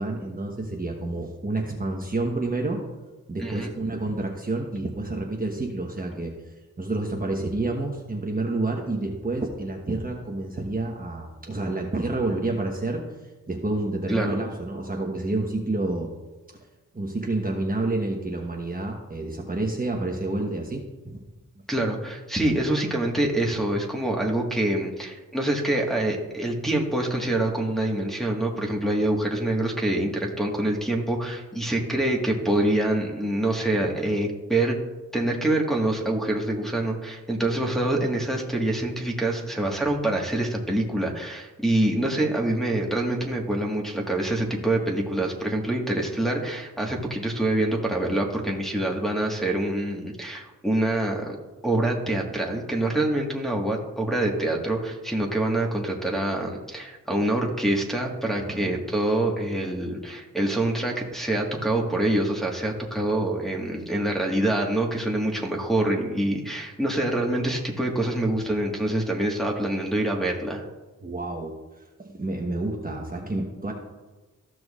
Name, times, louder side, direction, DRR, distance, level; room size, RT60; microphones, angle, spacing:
voice 1, 0.0-2.8 3.3-6.4 6.8-13.0 13.5-16.1 16.9-21.2 58.4-58.8 71.0-71.5 72.0-73.7, right 2 dB, 25° right, 0 dB, 1.1 m, -29 dB
voice 2, 3.4-3.7 14.1-14.3 21.7-34.7 35.1-51.4 51.6-70.6, right 1 dB, ahead, -2 dB, 1.5 m, -25 dB
14.5 x 6.1 x 2.5 m, 1.2 s
cardioid pair, 70°, 33 cm